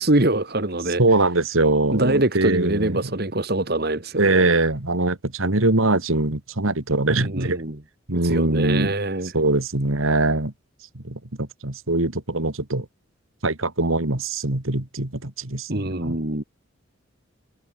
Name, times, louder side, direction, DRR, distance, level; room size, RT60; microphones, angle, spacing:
voice 1, 0.0-1.0 1.9-4.6 7.1-7.8 8.1-9.3 15.7-16.4, right 2 dB, 50° right, 1.9 m, -24 dB
voice 2, 1.0-3.1 4.2-7.6 8.1-8.9 9.3-10.5 10.9-12.9 13.4-16.2, right 2 dB, 80° right, 2.6 m, -22 dB
head